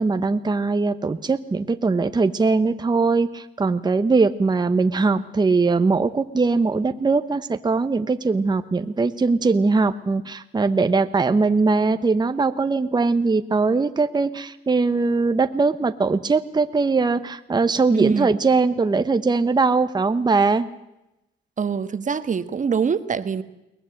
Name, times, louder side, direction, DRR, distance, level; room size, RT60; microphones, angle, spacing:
voice 1, 0.0-20.7, right 4 dB, 20° right, 1.0 m, -21 dB
voice 2, 17.9-18.3 21.6-23.4, right 6 dB, 40° right, 1.4 m, -24 dB
22.5 x 18.5 x 7.8 m
cardioid pair, 90°, 20 cm